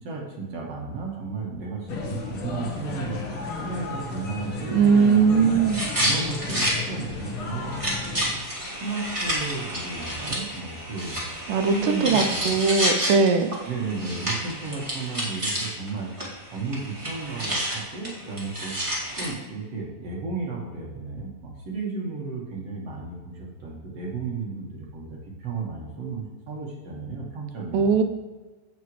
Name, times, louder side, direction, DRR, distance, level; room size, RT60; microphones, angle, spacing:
voice 1, 0.0-3.3 3.6-5.6 6.0-7.8 8.7-11.2 11.7-12.5 13.6-16.1 16.5-18.8 19.2-27.9, right 4 dB, 55° right, -3 dB, 2.2 m, -33 dB
sound 1, 1.9-8.4, left 3 dB, 80° left, 1.1 m, -34 dB
voice 2, 4.7-5.8 11.5-13.5 27.7-28.0, right 5 dB, 75° right, 6 dB, 2.2 m, -20 dB
sound 2, 5.7-6.7 7.1-7.2 7.6-15.9 16.2-16.3 16.5-19.3, equal, 15° right, 1.4 m, -29 dB
15.5 x 6.1 x 3.2 m, 1.3 s
omnidirectional pair, 4.2 m